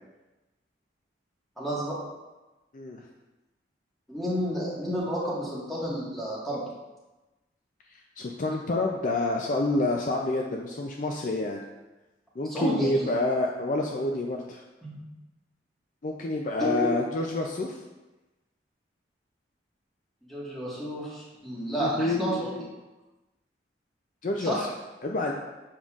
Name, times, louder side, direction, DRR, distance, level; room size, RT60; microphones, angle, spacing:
voice 1, 1.6-2.0 4.1-6.6 12.4-13.1 14.8-15.0 16.6-16.9 20.3-22.5 24.4-24.6, equal, ahead, -7 dB, 1.5 m, -30 dB
voice 2, 8.2-11.6 12.4-14.6 16.0-17.8 21.8-22.7 24.2-24.7 25.0-25.3, left 2 dB, 40° left, 1 dB, 0.4 m, -28 dB
7.2 x 5.4 x 2.4 m, 1.1 s
head